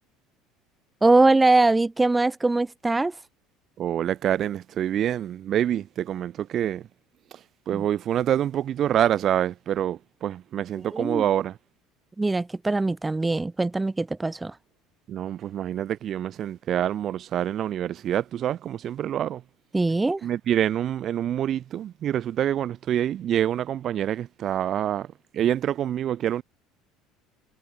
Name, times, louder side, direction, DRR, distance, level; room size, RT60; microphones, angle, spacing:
voice 1, 1.0-3.1 7.7-7.8 10.9-11.2 12.2-14.5 19.7-20.2, right 2 dB, 15° right, 1.3 m, -22 dB
voice 2, 3.8-6.9 7.7-11.6 15.1-19.4 20.2-25.1 25.3-26.4, right 10 dB, 45° right, 1.3 m, -26 dB
hypercardioid pair, 65°, 0 cm